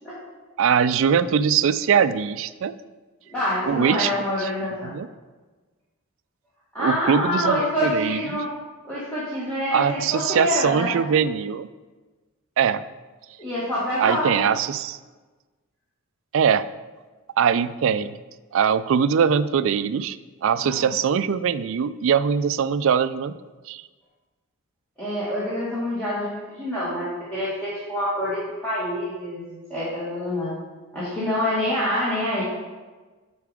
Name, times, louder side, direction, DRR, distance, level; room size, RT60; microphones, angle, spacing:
voice 1, 0.6-2.7 3.6-4.1 4.4-4.5 4.8-5.1 6.8-8.2 9.7-11.7 12.6-12.8 14.0-15.0 16.3-16.7 17.4-18.2 18.5-20.2 20.4-23.3 23.7-23.8, right 7 dB, 65° right, 14 dB, 0.3 m, -22 dB
voice 2, 3.3-4.9 6.7-8.5 8.8-11.0 13.4-14.4 20.6-20.9 25.0-30.5 30.9-32.4, left 1 dB, 5° left, -12 dB, 1.8 m, -26 dB
8.2 x 4.8 x 4.9 m, 1.3 s
head